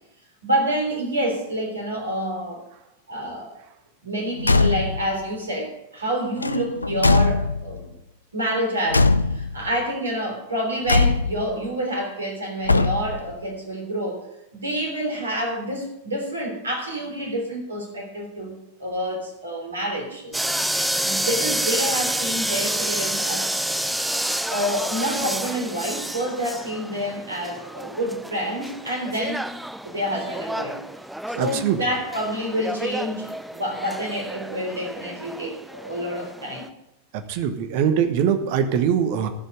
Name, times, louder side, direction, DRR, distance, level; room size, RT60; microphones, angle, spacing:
voice 1, 0.4-2.6 3.1-3.5 4.0-7.9 8.3-14.3 14.5-20.5 21.0-23.5 24.5-29.5 29.8-30.8 31.3-36.7, equal, 75° right, 1 dB, 3.4 m, -28 dB
Car / Truck / Slam, 4.4-5.1 6.4-7.8 8.9-9.7 10.9-11.6 12.6-13.3, left 3 dB, 80° left, 0.4 m, -20 dB
sound 1, 20.3-36.7, right 1 dB, 5° right, 0.5 m, -29 dB
voice 2, 31.4-31.8 37.1-39.3, right 8 dB, 45° right, 8 dB, 1.2 m, -22 dB
12.5 x 5.6 x 8.6 m, 0.89 s
figure-of-eight pair, 90°, 0 cm